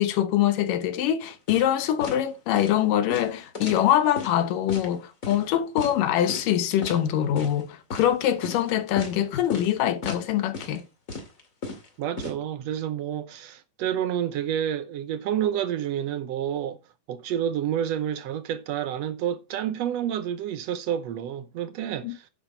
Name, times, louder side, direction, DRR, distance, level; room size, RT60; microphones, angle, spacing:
voice 1, 0.0-10.8 22.0-22.2, left 11 dB, 90° left, 2.8 m, -24 dB
sound 1, 1.5-1.7 2.0-2.2 2.5-2.7 3.1-4.3 4.7-4.9 5.2-5.4 5.8-5.9 6.3-6.5 6.8-7.0 7.4-7.6 7.9-8.1 8.4-8.6 9.0-9.2 9.5-9.7 10.0-10.3 10.5-10.8 11.1-12.3, left 3 dB, 30° left, 2.3 m, -35 dB
voice 2, 12.0-16.8 17.1-22.2, right 10 dB, 70° right, 1.6 m, -29 dB
10.5 x 6.7 x 4.4 m
omnidirectional pair, 3.7 m